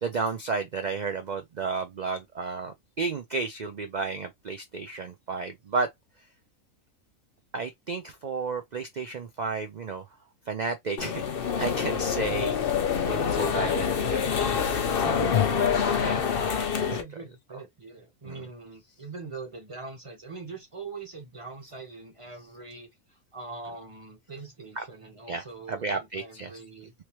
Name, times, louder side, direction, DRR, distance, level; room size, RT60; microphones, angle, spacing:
voice 1, 0.0-5.9 7.5-10.1 10.5-12.6 13.1-15.2 16.0-16.2 16.5-17.0 18.2-18.5 24.8-24.9 25.3-26.6, right 4 dB, 70° right, 0.4 m, -33 dB
sound 1, 11.0-17.0, left 7 dB, 50° left, 0.7 m, -26 dB
voice 2, 12.3-12.6 15.0-16.3 16.8-22.9 23.3-26.9, right 4 dB, 25° right, 1.1 m, -42 dB
3.1 x 3.0 x 2.9 m
omnidirectional pair, 1.5 m